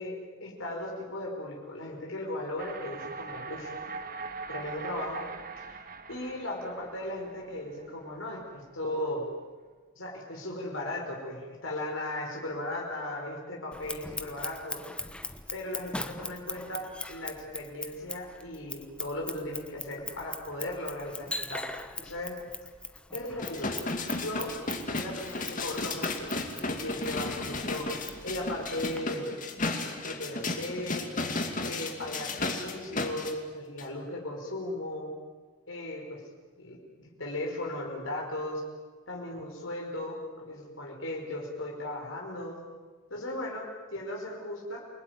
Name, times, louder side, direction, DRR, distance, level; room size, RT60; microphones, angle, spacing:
voice 1, 0.0-3.7 4.5-5.3 5.6-5.8 6.1-9.3 9.9-14.8 15.5-21.7 22.0-22.4 23.1-23.7 24.1-24.5 24.8-26.3 26.7-29.3 30.0-31.1 31.6-35.1 35.7-36.2 36.6-38.6 39.1-42.6 43.1-44.8, left 1 dB, 85° left, -1 dB, 5.3 m, -37 dB
sound 1, 2.6-8.6, right 4 dB, 45° right, 1.6 m, -42 dB
Scissors, 13.7-29.0, left 2 dB, 5° left, 1.1 m, -41 dB
sound 2, 23.4-33.3 33.8-33.9, left 2 dB, 45° left, 2.6 m, -34 dB
28.5 x 20.5 x 9.7 m, 1.4 s
head